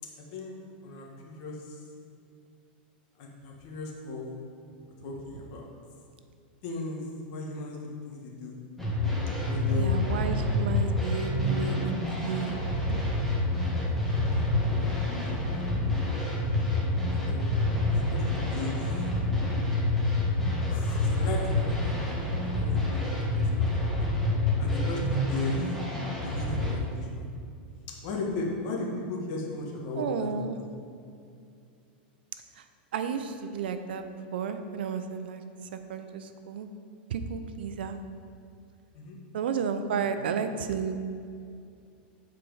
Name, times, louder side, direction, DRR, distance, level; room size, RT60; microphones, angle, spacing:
voice 1, 0.8-1.8 3.2-4.4 5.0-5.7 6.6-8.6 9.4-10.1 13.9-15.6 15.9-16.0 17.1-18.8 20.7-24.0 24.6-25.6 26.2-27.3 28.0-30.3 30.6-30.7 38.9-39.2 40.0-40.3, left 3 dB, 50° left, -1 dB, 1.5 m, -37 dB
sound 1, 8.8-26.7, left 2 dB, 5° left, 1.6 m, -27 dB
voice 2, 9.7-13.1 23.3-23.6 30.0-30.6 32.6-32.7 32.9-34.0 34.3-35.4 35.7-36.7 37.1-38.0 39.3-41.0, right 6 dB, 85° right, 9 dB, 0.6 m, -32 dB
8.3 x 4.5 x 4.8 m, 2.4 s
supercardioid pair, 140°, 5 cm